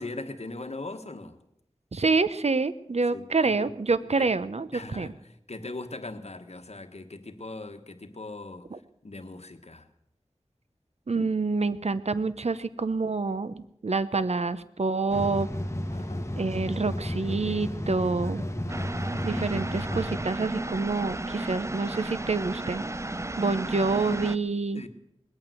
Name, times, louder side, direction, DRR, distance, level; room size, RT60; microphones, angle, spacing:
voice 1, 0.0-1.4 3.1-3.7 4.2-4.3 4.7-9.9 15.9-16.4 24.7-24.9, left 2 dB, 65° left, 1.4 m, -40 dB
voice 2, 1.9-4.7 5.0-5.1 8.7-8.8 11.1-15.5 16.4-18.4 19.2-22.8 23.4-24.9, right 3 dB, 65° right, 0.8 m, -27 dB
sound 1, 15.1-20.2, equal, 25° left, 1.7 m, -32 dB
sound 2, 18.7-24.4, right 2 dB, 25° right, 0.6 m, -34 dB
20.5 x 8.9 x 7.7 m
wide cardioid pair, 45°, 12 cm